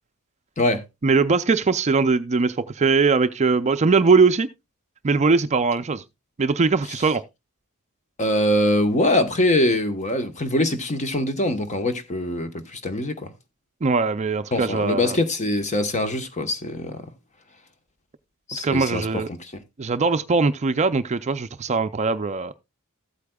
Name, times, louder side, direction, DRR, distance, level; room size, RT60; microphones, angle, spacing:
voice 1, 1.0-4.5 5.0-6.0 6.4-7.2 13.8-15.2 18.6-19.3 19.8-22.5, right 4 dB, 30° right, 0.4 m, -21 dB
voice 2, 8.2-13.3 14.5-17.0 18.5-19.5, left 1 dB, 30° left, 1.1 m, -23 dB
14.5 x 8.3 x 2.3 m
head